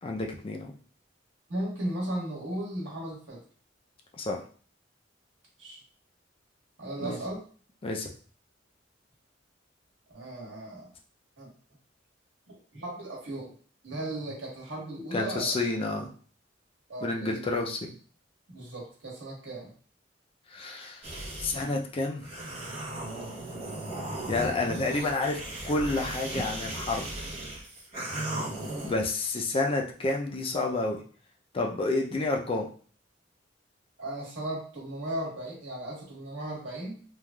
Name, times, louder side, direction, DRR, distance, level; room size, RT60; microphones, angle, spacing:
voice 1, 0.0-0.7 4.2-4.4 7.0-7.2 7.8-8.1 15.1-16.1 17.0-17.9 20.5-21.1 21.4-22.2 24.3-27.1 28.8-31.0 31.5-32.7, left 2 dB, 30° left, 1 dB, 0.4 m, -29 dB
voice 2, 1.5-3.4 5.6-5.8 6.8-7.4 10.1-10.9 11.4-11.5 12.7-13.6 13.8-15.6 16.9-17.5 18.5-19.7 28.4-28.5 34.0-37.0, right 1 dB, 75° right, -4 dB, 1.3 m, -36 dB
sound 1, 21.0-21.6 22.2-28.9, right 1 dB, 35° right, 0.9 m, -36 dB
3.2 x 2.4 x 2.2 m, 0.43 s
head